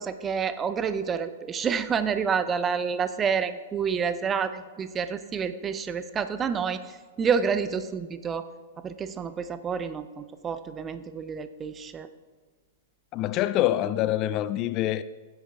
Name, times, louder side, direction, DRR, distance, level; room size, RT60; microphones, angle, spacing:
voice 1, 0.0-8.5 8.8-12.1, right 6 dB, 20° right, 0.6 m, -29 dB
voice 2, 13.1-15.0, left 13 dB, 35° left, 0.3 m, -25 dB
15.5 x 8.1 x 3.5 m
figure-of-eight pair, 105°, 0 cm